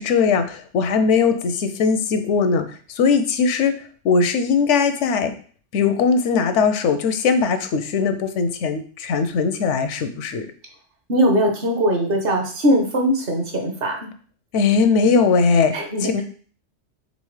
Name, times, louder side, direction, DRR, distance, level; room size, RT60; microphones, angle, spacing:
voice 1, 0.0-3.7 4.0-5.3 5.7-10.5 14.5-15.7 16.0-16.2, left 5 dB, 85° left, 9 dB, 0.9 m, -19 dB
voice 2, 11.1-14.1 15.7-16.2, equal, 55° right, 2 dB, 1.1 m, -20 dB
4.1 x 3.7 x 3.1 m, 0.43 s
omnidirectional pair, 1.2 m